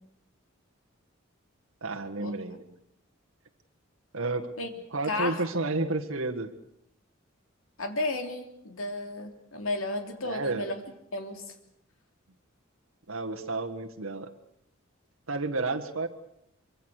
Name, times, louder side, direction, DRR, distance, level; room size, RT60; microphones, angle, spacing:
voice 1, 1.8-2.8 4.1-4.5 4.9-6.5 10.2-10.7 13.1-14.3 15.3-16.1, right 3 dB, 85° right, 3 dB, 1.7 m, -31 dB
voice 2, 5.1-5.4 7.8-10.8 11.1-11.4, left 2 dB, 85° left, 5 dB, 3.1 m, -33 dB
24.5 x 24.0 x 6.5 m, 0.75 s
head